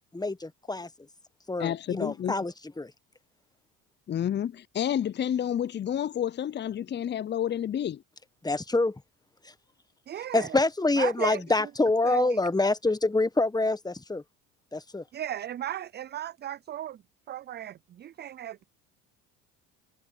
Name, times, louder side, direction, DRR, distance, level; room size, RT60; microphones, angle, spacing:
voice 1, 0.1-0.9 1.5-2.9 8.4-9.0 10.3-14.2 14.7-15.0, left 2 dB, 10° left, 1.3 m, -26 dB
voice 2, 1.6-2.3 4.1-8.0, left 10 dB, 25° left, 0.5 m, -29 dB
voice 3, 10.1-10.5 11.0-11.4 12.0-12.4 15.1-17.0 17.3-18.7, right 11 dB, 25° right, 0.4 m, -35 dB
supercardioid pair, 75°, 42 cm